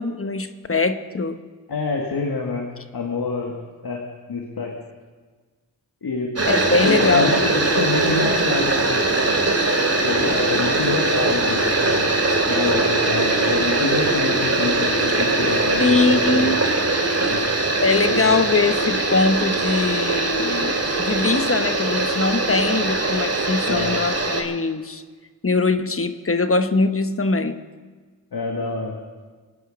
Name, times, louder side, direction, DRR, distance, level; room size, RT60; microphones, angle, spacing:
voice 1, 0.0-1.4 6.5-7.4 15.8-16.6 17.8-20.7 21.0-25.0 25.4-27.6, left 3 dB, 35° left, 9 dB, 1.1 m, -21 dB
voice 2, 1.7-3.6 3.8-4.0 4.3-4.7 6.0-6.3 6.8-9.0 10.0-12.1 12.4-16.5 17.3-17.5 18.1-18.4 23.6-24.0 28.3-29.0, left 4 dB, 70° left, 0 dB, 1.9 m, -26 dB
sound 1, 6.3-24.4, right 2 dB, 40° right, 2.6 m, -21 dB
24.0 x 9.4 x 5.2 m, 1.4 s
cardioid pair, 50°, 38 cm